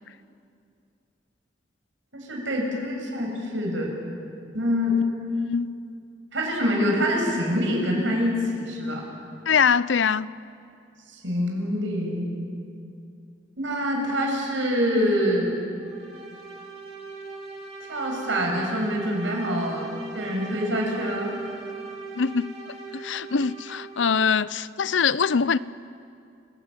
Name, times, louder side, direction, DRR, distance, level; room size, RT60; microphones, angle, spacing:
voice 1, 2.1-3.9 4.5-5.0 6.3-9.0 11.1-12.3 13.6-15.5 17.9-19.9 20.1-21.3, equal, 80° right, 7.2 m, -25 dB
voice 2, 5.4-5.7 9.5-10.3 22.2-22.5 22.9-25.6, left 6 dB, 75° left, 0.6 m, -23 dB
sound 1, 15.8-24.2, right 4 dB, 30° right, 3.7 m, -39 dB
30.0 x 17.5 x 9.2 m
head